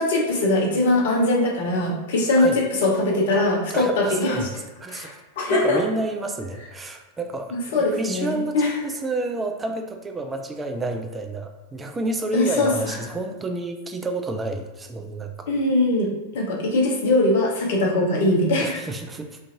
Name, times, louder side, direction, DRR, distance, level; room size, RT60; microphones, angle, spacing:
voice 1, 0.0-4.5 4.9-5.8 7.5-8.7 12.3-12.9 15.5-18.8, left 2 dB, 55° left, -1 dB, 0.7 m, -21 dB
voice 2, 3.7-4.5 4.8-5.2 5.5-15.5 18.6-19.4, right 2 dB, 15° right, 5 dB, 0.3 m, -30 dB
2.5 x 2.3 x 2.7 m, 1.2 s
figure-of-eight pair, 90°, 0 cm